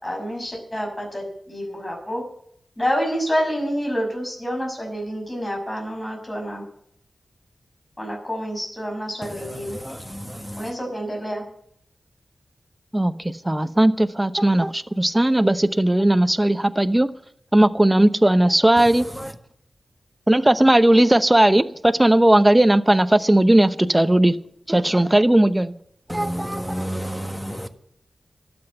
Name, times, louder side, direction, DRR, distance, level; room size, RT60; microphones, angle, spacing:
voice 1, 0.0-2.2 2.8-6.6 8.0-9.8 10.6-11.4, equal, 25° left, 5.9 m, -28 dB
voice 2, 9.5-10.7 26.1-27.7, equal, 5° left, 1.5 m, -31 dB
voice 3, 12.9-17.1 17.5-19.0 20.3-24.4 24.7-25.7 26.1-26.8, right 1 dB, 15° right, 0.8 m, -17 dB
12.5 x 8.0 x 9.8 m
wide cardioid pair, 65°, 0 cm